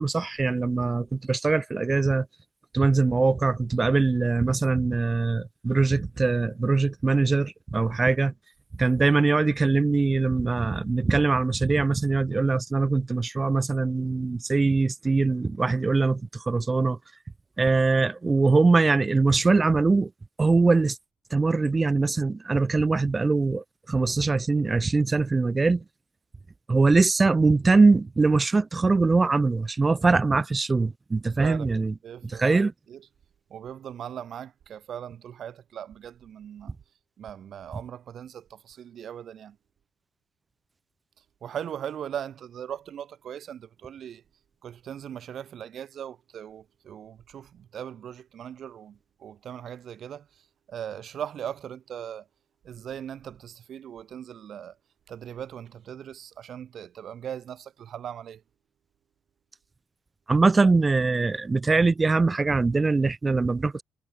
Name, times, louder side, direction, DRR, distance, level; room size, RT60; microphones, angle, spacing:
voice 1, 0.0-2.3 2.7-8.3 8.8-17.0 17.6-20.1 20.4-21.0 21.3-25.8 26.7-31.9 32.4-32.7 60.3-63.8, right 3 dB, 25° right, 0.3 m, -22 dB
voice 2, 31.4-33.1 33.5-36.7 37.2-39.6 41.4-44.2 44.6-52.3 52.6-54.8 55.1-58.4, right 9 dB, 65° right, 1.8 m, -39 dB
cardioid pair, 90°, 0 cm